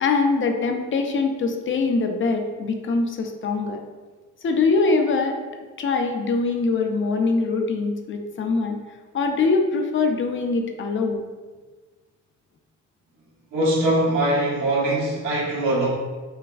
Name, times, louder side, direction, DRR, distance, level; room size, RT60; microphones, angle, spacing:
voice 1, 0.0-3.8 4.4-5.4 5.8-8.8 9.1-11.2, left 4 dB, 40° left, 4 dB, 0.5 m, -23 dB
voice 2, 13.5-15.9, right 1 dB, 85° right, -5 dB, 1.1 m, -22 dB
4.6 x 2.2 x 2.5 m, 1.3 s
cardioid pair, 90°, 30 cm